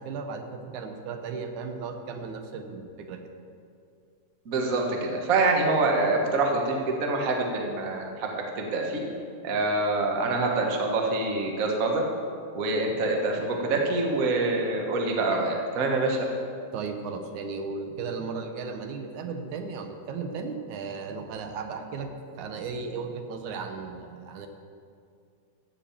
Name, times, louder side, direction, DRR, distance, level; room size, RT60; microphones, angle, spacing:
voice 1, 0.0-3.2 16.7-24.5, right 4 dB, 80° right, 5 dB, 2.3 m, -35 dB
voice 2, 4.4-9.0 9.4-12.0 12.5-16.2, right 2 dB, 50° right, 1 dB, 1.0 m, -26 dB
15.0 x 5.1 x 7.1 m, 2.4 s
omnidirectional pair, 3.4 m